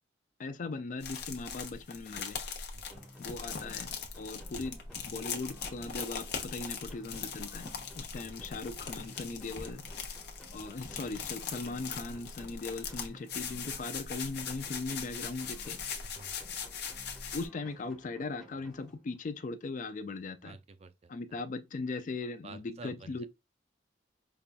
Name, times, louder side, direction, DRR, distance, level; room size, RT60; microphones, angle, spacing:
voice 1, 0.4-2.4 3.2-3.9 4.2-4.8 5.1-9.8 10.5-15.8 17.3-20.6 21.1-23.3, left 3 dB, 45° left, 0.4 m, -39 dB
sound 1, 1.0-17.5, left 6 dB, 60° left, 0.8 m, -40 dB
voice 2, 2.7-3.1 8.0-8.3 16.0-16.4 20.4-21.1 22.2-23.3, right 3 dB, 35° right, 0.4 m, -51 dB
sound 2, 2.9-19.4, equal, ahead, 0.7 m, -56 dB
5.2 x 2.3 x 2.4 m
head